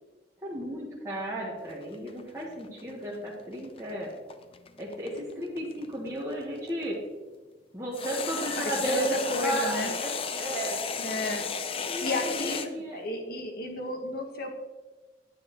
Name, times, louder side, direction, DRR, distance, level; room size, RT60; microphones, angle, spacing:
voice 1, 0.4-4.1 4.8-7.0 7.7-10.1 10.4-10.8 11.9-13.0, right 1 dB, 15° right, -5 dB, 1.3 m, -34 dB
sound 1, 1.7-6.8 7.9-12.7, left 5 dB, 30° left, 0.5 m, -34 dB
voice 2, 8.6-9.9 11.0-14.6, left 2 dB, 55° left, 3 dB, 1.4 m, -33 dB
9.7 x 8.8 x 3.0 m, 1.2 s
head